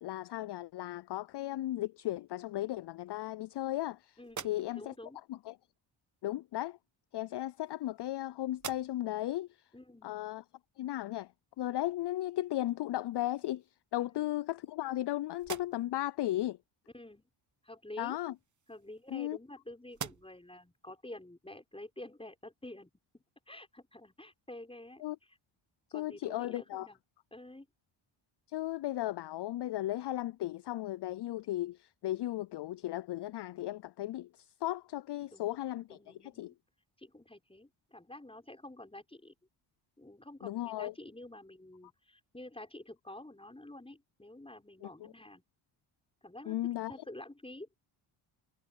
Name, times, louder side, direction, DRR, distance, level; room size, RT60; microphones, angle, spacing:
voice 1, 0.0-4.2 4.4-4.9 5.3-5.5 6.2-6.8 7.1-9.5 10.0-10.4 10.8-11.3 11.6-13.6 13.9-16.6 18.0-18.3 19.1-19.4 25.0-25.2 25.9-26.9 28.5-34.3 34.6-36.5 40.4-40.9 44.8-45.1 46.5-46.9, left 15 dB, 55° left, 0.5 m, -36 dB
voice 2, 4.2-5.2 9.7-10.1 16.9-17.3 17.6-18.2 18.7-25.4 25.9-27.0 27.3-27.7 35.2-35.6 35.9-36.5 37.0-39.3 40.0-45.4 46.2-47.7, left 1 dB, 10° left, 6.6 m, -49 dB
sound 1, 4.2-5.1 6.2-6.4 7.3-8.2 8.5-9.2 9.7-9.8 12.5-12.6 13.0-13.7 14.3-15.0 15.4-16.1 18.1-19.5 19.9-20.6, right 7 dB, 35° right, 1.1 m, -47 dB
cardioid pair, 75°, 50 cm